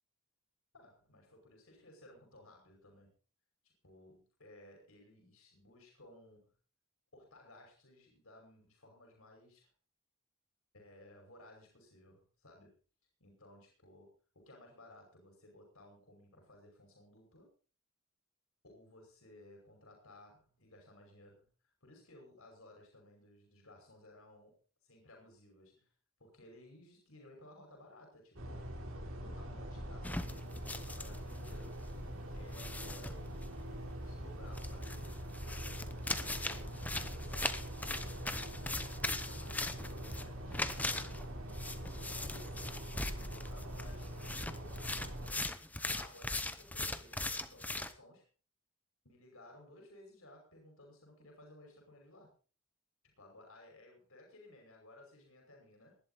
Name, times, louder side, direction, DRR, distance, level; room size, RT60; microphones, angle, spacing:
voice 1, 0.7-3.1 3.6-6.5 7.1-9.7 10.7-12.7 13.2-14.1 14.3-17.5 18.6-21.5 21.8-24.6 24.8-25.9 26.2-28.6 29.1-31.8 32.4-35.1 35.4-40.7 41.7-45.5 45.8-48.3 49.0-52.3 53.2-56.0, left 1 dB, 75° left, 1 dB, 5.6 m, -58 dB
sound 1, 28.4-45.3, equal, 70° right, 4.1 m, -44 dB
sound 2, 30.0-31.6 31.9-32.0 32.5-33.4 34.5-47.9, left 2 dB, 5° left, 0.8 m, -40 dB
19.5 x 11.5 x 4.1 m, 0.39 s
head